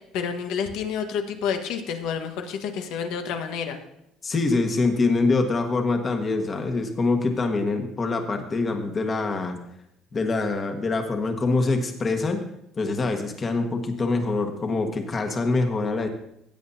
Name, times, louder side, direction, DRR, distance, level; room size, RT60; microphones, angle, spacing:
voice 1, 0.1-3.8, left 7 dB, 75° left, 6 dB, 1.3 m, -29 dB
voice 2, 4.2-9.6 10.1-12.4 12.8-16.1, left 3 dB, 30° left, 5 dB, 1.4 m, -24 dB
16.0 x 8.6 x 2.7 m, 0.81 s
cardioid pair, 120°, 0 cm